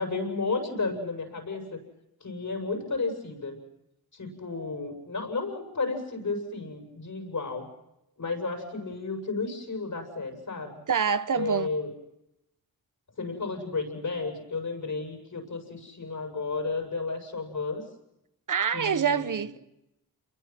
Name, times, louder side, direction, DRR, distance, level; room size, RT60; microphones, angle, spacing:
voice 1, 0.0-1.8 2.2-3.6 4.1-7.7 8.2-10.8 11.3-11.9 13.2-17.8 18.7-19.4, left 3 dB, 55° left, 7.5 m, -32 dB
voice 2, 10.9-11.7 18.5-19.6, right 7 dB, 55° right, 1.0 m, -26 dB
29.5 x 23.0 x 6.0 m
cardioid pair, 65°, 37 cm